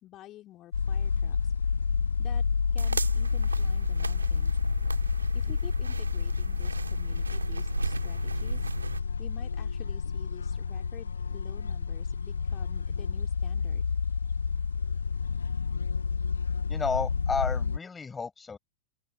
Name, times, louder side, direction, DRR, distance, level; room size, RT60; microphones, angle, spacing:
voice 1, 0.0-1.5 2.2-2.4 2.7-4.6 5.3-8.7 9.2-14.0, left 14 dB, 35° left, 3.4 m, -50 dB
sound 1, 0.7-17.8, left 5 dB, 75° left, 0.4 m, -29 dB
sound 2, 2.8-9.0, right 4 dB, 75° right, 3.4 m, -36 dB
voice 2, 16.7-18.6, left 5 dB, 15° left, 5.9 m, -32 dB
open air
figure-of-eight pair, 90°, 0 cm